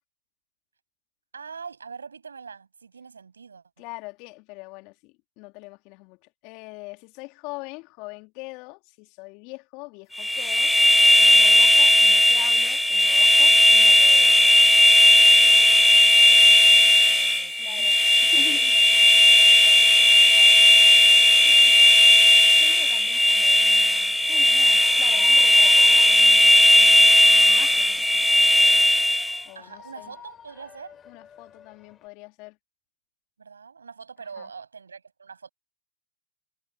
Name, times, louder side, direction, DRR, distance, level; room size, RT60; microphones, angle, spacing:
voice 1, 1.3-3.6 15.4-18.3 18.6-21.9 22.3-22.6 29.5-30.9 33.4-35.5, right 5 dB, 85° right, 7.7 m, -44 dB
voice 2, 3.8-10.7 11.2-14.4 17.6-18.7 22.4-28.9 29.4-30.1 31.1-32.6 34.4-34.5, left 27 dB, 45° left, 2.5 m, -43 dB
sound 1, 10.2-29.4, left 1 dB, ahead, 0.3 m, -16 dB
Shout / Cheering, 18.2-32.1, left 8 dB, 25° left, 3.4 m, -51 dB
hypercardioid pair, 100°, 0 cm